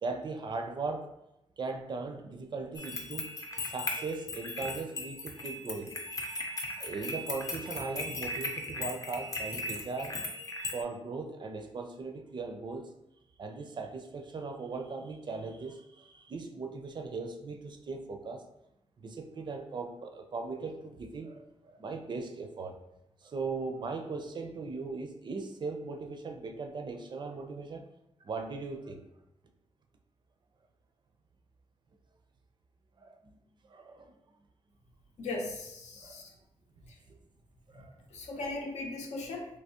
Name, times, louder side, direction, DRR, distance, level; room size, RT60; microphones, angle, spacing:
voice 1, 0.0-1.1 1.6-3.3 3.6-6.0 6.8-10.2 10.7-13.0 13.4-18.4 19.0-22.8 23.2-27.9 28.2-29.1 33.0-33.4 33.7-34.1 36.0-36.2 37.1-37.2 37.7-37.9 38.3-38.4, right 4 dB, 45° right, 5 dB, 0.4 m, -39 dB
sound 1, 2.8-10.8, left 2 dB, 30° left, 0.5 m, -38 dB
voice 2, 35.2-36.3 38.1-39.5, left 2 dB, 90° left, 0 dB, 0.7 m, -38 dB
3.4 x 2.7 x 2.8 m, 0.86 s
wide cardioid pair, 120°, 11 cm